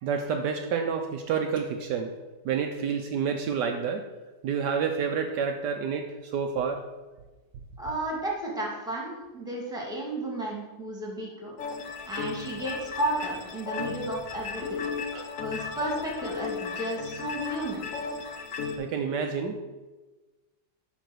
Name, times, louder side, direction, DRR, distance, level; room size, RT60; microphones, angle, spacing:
voice 1, 0.0-2.1 2.4-4.0 4.4-6.8 14.6-14.7 15.1-15.3 18.8-19.6, right 6 dB, 75° right, 4 dB, 1.2 m, -29 dB
voice 2, 7.8-11.5 12.1-14.8 15.4-17.9, right 1 dB, ahead, -3 dB, 1.8 m, -33 dB
sound 1, 11.6-18.8, left 5 dB, 55° left, 1.1 m, -35 dB
9.2 x 4.0 x 6.2 m, 1.2 s
omnidirectional pair, 2.0 m